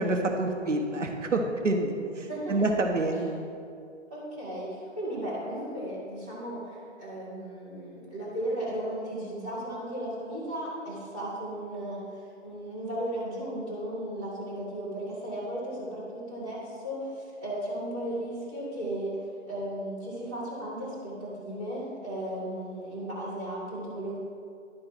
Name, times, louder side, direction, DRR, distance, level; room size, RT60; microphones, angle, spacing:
voice 1, 0.0-3.3, right 2 dB, 80° right, 3 dB, 1.0 m, -27 dB
voice 2, 2.3-2.8 4.1-24.2, right 1 dB, 5° right, -14 dB, 0.4 m, -35 dB
11.0 x 4.7 x 4.4 m, 2.4 s
figure-of-eight pair, 130°, 36 cm